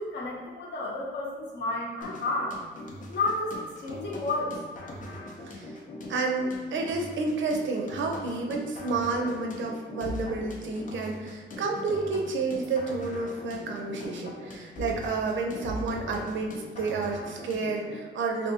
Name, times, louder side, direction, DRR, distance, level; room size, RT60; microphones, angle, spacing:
voice 1, 0.0-2.5 3.1-4.5, left 2 dB, 60° left, -3 dB, 0.8 m, -31 dB
sound 1, 2.0-18.0, equal, 40° left, 0.5 m, -41 dB
voice 2, 6.1-18.5, right 3 dB, 70° right, 2 dB, 0.5 m, -30 dB
3.4 x 2.6 x 2.7 m, 1.4 s
wide cardioid pair, 170°, 20 cm